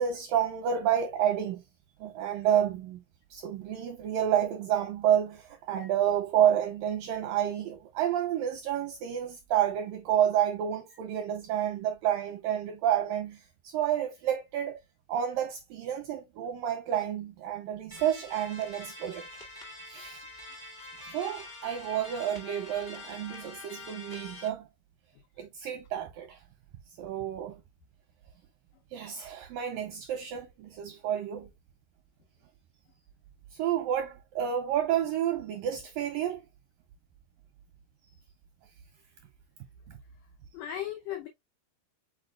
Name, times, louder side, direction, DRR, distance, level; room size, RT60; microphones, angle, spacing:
voice 1, 0.0-1.6 2.0-3.0 3.3-14.8 15.1-19.3 19.9-20.2 21.0-24.7 25.4-26.4 27.0-27.6 28.9-31.5 33.5-36.4 39.9-40.0, right 10 dB, 85° right, 2.0 m, -30 dB
sound 1, 17.9-24.5, left 2 dB, 50° left, 0.6 m, -45 dB
voice 2, 40.5-41.3, left 11 dB, 85° left, 1.8 m, -37 dB
5.7 x 4.1 x 2.2 m
omnidirectional pair, 4.7 m